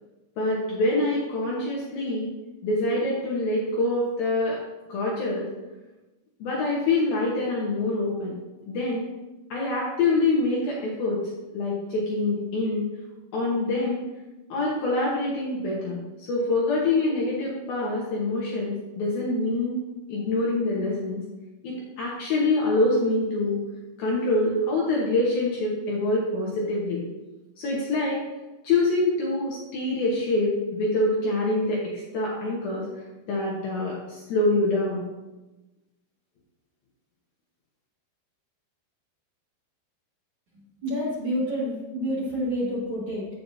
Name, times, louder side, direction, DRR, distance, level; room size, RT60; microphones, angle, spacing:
voice 1, 0.4-2.3 2.6-4.6 4.9-5.5 6.4-8.3 8.7-9.1 9.5-11.2 11.5-12.8 13.3-14.0 14.5-19.8 20.1-21.2 21.6-23.6 24.0-27.0 27.6-28.2 28.6-31.8 32.1-32.9 33.3-35.0, left 2 dB, 70° left, -5 dB, 2.3 m, -25 dB
voice 2, 40.8-43.3, equal, 90° right, -9 dB, 1.1 m, -28 dB
8.6 x 8.6 x 2.8 m, 1.1 s
omnidirectional pair, 5.8 m